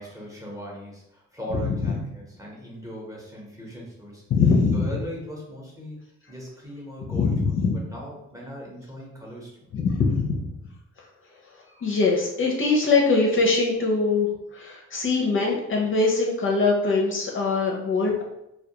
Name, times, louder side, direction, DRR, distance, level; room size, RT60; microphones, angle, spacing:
voice 1, 0.0-4.3 4.7-6.0 6.3-7.6 7.9-9.7, equal, 10° right, -3 dB, 0.9 m, -39 dB
voice 2, 4.3-4.9 7.1-7.8 9.7-10.5 11.0-11.1 11.5-18.2, left 4 dB, 45° left, -1 dB, 0.5 m, -22 dB
2.2 x 2.2 x 2.8 m, 0.84 s
cardioid pair, 90°, 30 cm